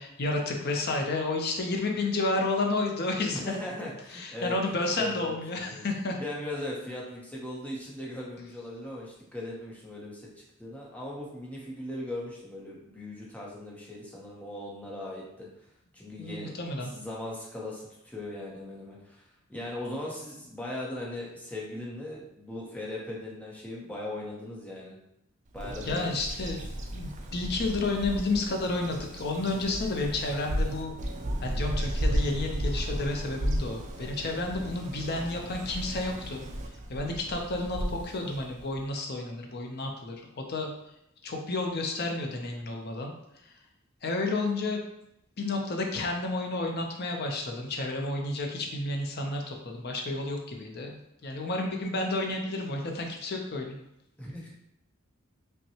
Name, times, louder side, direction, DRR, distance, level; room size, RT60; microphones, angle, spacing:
voice 1, 0.0-3.6 4.1-6.2 16.2-16.9 25.9-26.6 26.9-30.9 31.4-36.4 36.9-40.7 41.2-43.1 44.0-44.8 45.4-51.0 51.2-53.8, left 2 dB, 50° left, 2 dB, 0.6 m, -31 dB
voice 2, 3.3-4.6 5.0-5.8 6.2-15.5 15.9-16.6 16.9-19.2 19.5-24.9 25.5-26.0 26.4-26.6 54.2-54.5, left 1 dB, 5° left, -4 dB, 0.8 m, -39 dB
Bird vocalization bird call bird song, 25.5-38.8, equal, 35° right, 0.4 m, -34 dB
5.4 x 2.2 x 2.9 m, 0.82 s
head